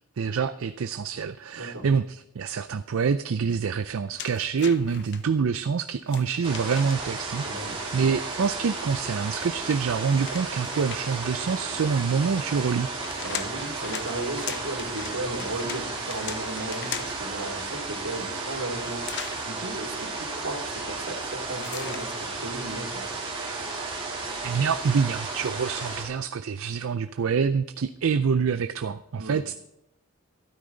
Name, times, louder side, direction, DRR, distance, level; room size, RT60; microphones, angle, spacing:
voice 1, 0.2-12.9 24.4-29.5, right 6 dB, 65° right, 11 dB, 0.4 m, -26 dB
voice 2, 1.6-1.9 7.4-7.8 13.2-23.0 29.2-29.4, right 2 dB, 80° right, 2 dB, 2.7 m, -35 dB
sound 1, 4.2-5.2 6.1-7.2 9.0-11.3 12.7-17.3 19.0-19.4 21.6-22.1, left 8 dB, 50° left, 0.8 m, -39 dB
sound 2, 6.4-26.0, right 3 dB, 25° right, 3.0 m, -33 dB
13.5 x 12.5 x 3.9 m, 0.84 s
head